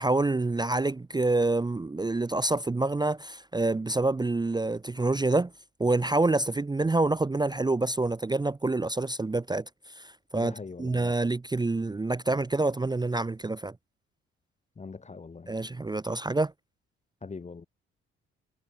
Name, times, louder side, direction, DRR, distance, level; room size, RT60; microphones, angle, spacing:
voice 1, 0.0-5.5 5.8-9.6 10.0-10.5 10.8-13.7 15.5-16.5, right 2 dB, 15° right, 0.6 m, -27 dB
voice 2, 10.3-11.1 14.8-15.5 17.2-17.7, left 4 dB, 20° left, 0.8 m, -41 dB
hypercardioid pair, 45°, 31 cm